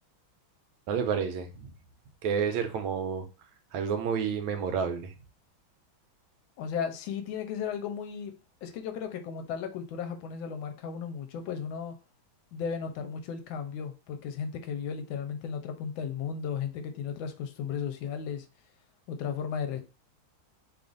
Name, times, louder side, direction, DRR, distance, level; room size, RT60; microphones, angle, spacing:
voice 1, 0.9-1.7 2.2-3.2 3.7-5.1, right 7 dB, 80° right, 1.4 m, -30 dB
voice 2, 6.6-8.4 8.6-11.9 12.5-18.5 19.1-19.8, left 7 dB, 80° left, 1.3 m, -35 dB
3.3 x 2.4 x 3.8 m
omnidirectional pair, 2.2 m